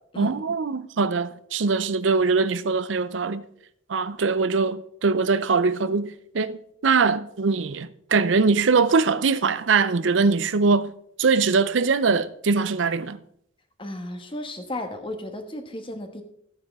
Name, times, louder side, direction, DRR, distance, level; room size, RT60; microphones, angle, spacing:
voice 1, 0.2-3.4 3.9-10.9 11.2-13.2, right 4 dB, 80° right, 0.6 m, -22 dB
voice 2, 13.8-16.2, left 1 dB, 30° left, 1.3 m, -34 dB
14.0 x 8.8 x 3.6 m
head